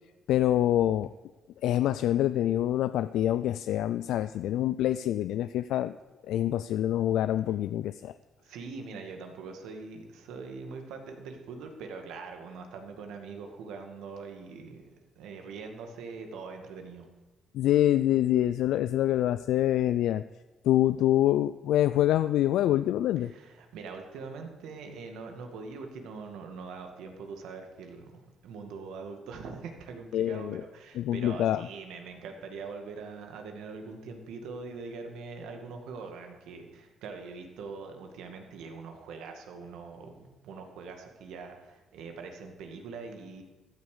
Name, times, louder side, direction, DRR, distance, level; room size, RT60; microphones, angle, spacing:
voice 1, 0.3-1.1 1.6-6.0 6.3-8.1 17.5-20.2 20.6-23.3 30.1-30.6 31.0-31.6, left 12 dB, 85° left, 13 dB, 0.3 m, -26 dB
voice 2, 8.4-14.9 15.2-17.1 23.2-43.4, right 4 dB, 90° right, 4 dB, 2.1 m, -42 dB
14.5 x 9.5 x 6.7 m, 1.1 s
cardioid pair, 90°, 0 cm